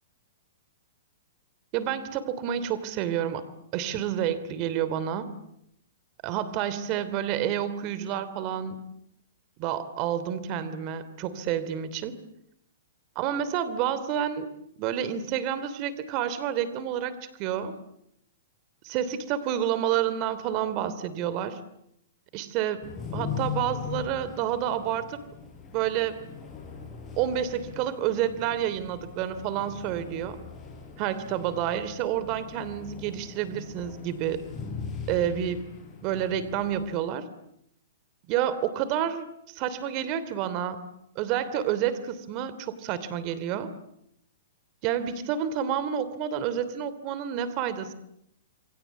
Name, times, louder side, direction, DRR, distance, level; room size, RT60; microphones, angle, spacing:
voice 1, 1.7-3.5 3.7-5.3 6.2-8.8 9.6-12.2 13.1-14.5 14.8-17.7 18.8-21.6 22.3-22.8 23.1-25.2 25.7-26.2 27.2-30.4 31.0-34.4 35.1-35.7 36.0-37.3 38.3-40.8 41.1-43.7 44.8-47.9, right 10 dB, 35° right, 14 dB, 2.9 m, -29 dB
sound 1, 22.8-37.0, left 6 dB, 20° left, 6.1 m, -40 dB
28.0 x 23.0 x 8.4 m, 0.77 s
hypercardioid pair, 145°, 0 cm